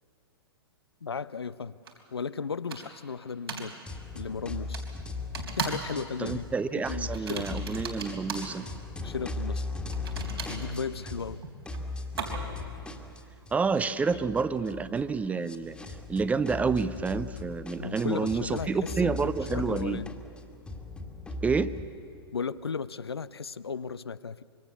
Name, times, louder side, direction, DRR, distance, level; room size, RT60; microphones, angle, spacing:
voice 1, 1.0-1.8 2.1-3.8 4.1-4.8 5.5-6.5 6.9-7.6 9.0-9.6 10.5-11.4 17.8-20.1 22.3-24.4, left 5 dB, 75° left, 16 dB, 0.6 m, -35 dB
sound 1, 1.8-1.9 2.7-3.0 3.5-3.7 4.7-4.9 5.3-5.9 6.2-6.5 7.1-8.5 9.9-12.7, right 5 dB, 75° right, 3.8 m, -37 dB
sound 2, 3.9-6.5 6.8-11.4 11.6-21.9, left 3 dB, 5° left, 1.8 m, -38 dB
voice 2, 6.2-8.7 13.5-15.8 16.1-20.0 21.4-21.7, right 5 dB, 10° right, 15 dB, 0.6 m, -29 dB
25.5 x 23.0 x 6.9 m, 2.8 s
figure-of-eight pair, 105°, 13 cm